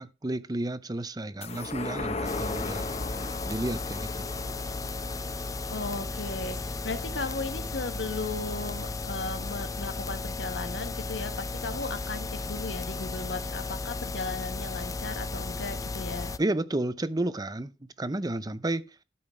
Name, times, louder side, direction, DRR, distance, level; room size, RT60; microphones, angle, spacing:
voice 1, 0.0-2.9 3.4-4.3 16.4-18.9, right 1 dB, 20° right, 0.7 m, -31 dB
sound 1, 1.4-8.2 8.6-8.7, left 3 dB, 35° left, 1.0 m, -38 dB
sound 2, 2.2-16.4, left 3 dB, 20° left, 0.5 m, -35 dB
voice 2, 5.7-16.3, left 3 dB, 85° left, 1.4 m, -36 dB
12.5 x 5.9 x 4.5 m
head